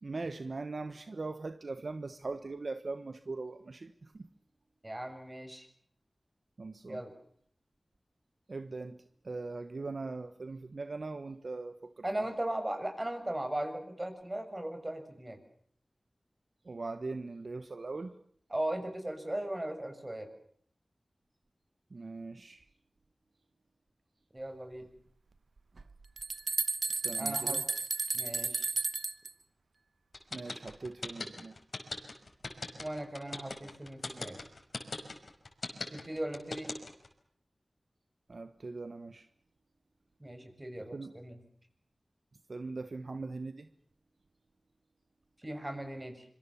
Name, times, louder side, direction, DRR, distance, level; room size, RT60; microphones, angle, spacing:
voice 1, 0.0-4.3 6.6-7.0 8.5-12.0 16.6-18.2 21.9-22.6 26.9-27.6 30.3-31.6 38.3-39.3 40.9-41.1 42.5-43.7, right 3 dB, 70° right, 1.3 m, -40 dB
voice 2, 4.8-5.7 6.9-7.1 12.0-15.4 18.5-20.3 24.3-24.9 27.2-27.6 28.1-28.7 32.8-34.4 35.9-36.7 40.2-41.4 45.4-46.3, right 1 dB, 25° right, 6.9 m, -38 dB
sound 1, 25.8-29.3, right 4 dB, 85° right, 1.1 m, -33 dB
sound 2, 30.1-37.1, left 3 dB, 75° left, 5.5 m, -39 dB
26.0 x 24.5 x 7.1 m
cardioid pair, 45°, 0 cm